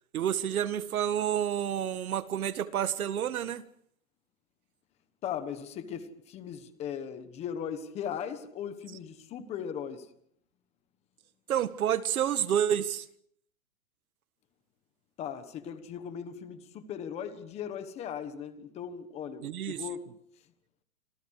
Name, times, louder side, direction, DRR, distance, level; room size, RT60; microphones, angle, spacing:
voice 1, 0.1-3.7 11.5-13.1 19.4-19.8, right 9 dB, 80° right, 1.8 m, -29 dB
voice 2, 5.2-10.1 15.2-20.0, left 8 dB, 15° left, 1.3 m, -38 dB
28.0 x 26.5 x 4.9 m
supercardioid pair, 170°, 42 cm